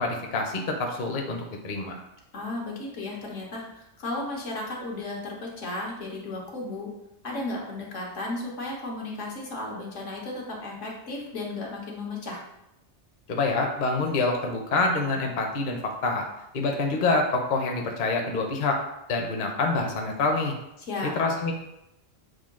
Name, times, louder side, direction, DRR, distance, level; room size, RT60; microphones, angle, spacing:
voice 1, 0.0-1.9 13.3-16.3 16.5-18.8 19.1-20.5 21.2-21.5, left 3 dB, 50° left, 2 dB, 0.7 m, -26 dB
voice 2, 2.3-6.9 7.2-12.4 20.8-21.1, left 2 dB, 85° left, -2 dB, 1.4 m, -34 dB
6.4 x 2.3 x 3.6 m, 0.87 s
omnidirectional pair, 1.2 m